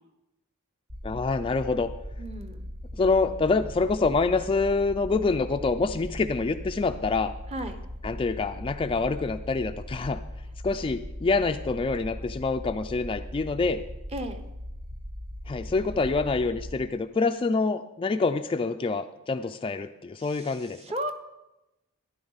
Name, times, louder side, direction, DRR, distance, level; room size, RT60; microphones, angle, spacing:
sound 1, 0.9-16.7, left 1 dB, 70° right, 1.7 m, -39 dB
voice 1, 1.0-1.9 3.0-7.3 8.0-10.2 10.6-13.8 15.5-20.8, left 3 dB, 25° left, 8 dB, 0.3 m, -26 dB
voice 2, 2.2-2.6 7.5-7.8 14.1-14.4 20.2-21.1, right 1 dB, 30° right, 6 dB, 0.9 m, -35 dB
13.0 x 10.5 x 4.0 m, 0.96 s
head